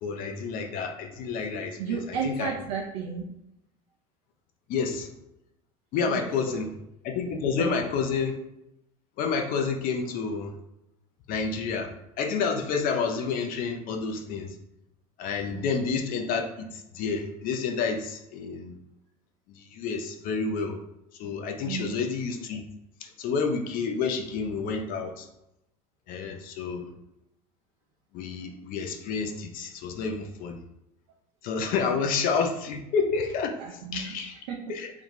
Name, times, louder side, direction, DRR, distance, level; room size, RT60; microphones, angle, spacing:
voice 1, 0.0-2.5 4.7-5.1 5.9-6.8 7.0-8.4 9.2-10.5 11.3-14.5 15.2-18.8 19.6-20.8 21.2-22.6 23.0-25.3 26.1-26.9 28.1-30.6 31.4-34.3 34.7-34.9, left 5 dB, 50° left, 4 dB, 0.6 m, -29 dB
voice 2, 1.8-3.4 6.0-6.6 7.6-8.1 15.5-15.7 21.6-22.0 31.9-32.1 33.6-34.7, right 6 dB, 65° right, 1 dB, 0.5 m, -34 dB
3.7 x 2.3 x 3.0 m, 0.84 s
figure-of-eight pair, 70°, 19 cm